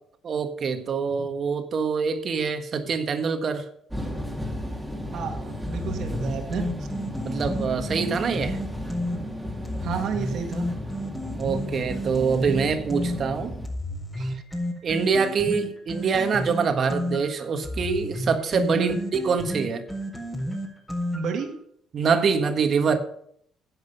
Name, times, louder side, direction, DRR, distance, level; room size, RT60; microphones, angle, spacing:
voice 1, 0.2-3.6 7.2-8.6 11.4-13.5 14.2-14.3 14.8-18.9 19.2-19.8 21.9-23.0, right 5 dB, 50° right, 7 dB, 1.5 m, -25 dB
sound 1, 3.9-13.7, equal, 10° right, 2.9 m, -34 dB
voice 2, 5.1-6.7 9.8-10.7 18.7-19.0 21.1-21.5, right 6 dB, 70° right, 4 dB, 1.9 m, -30 dB
sound 2, 5.6-9.2 9.6-13.2 13.6-21.4, equal, 15° left, 4.7 m, -31 dB
10.5 x 7.9 x 5.5 m, 0.67 s
supercardioid pair, 75°, 0 cm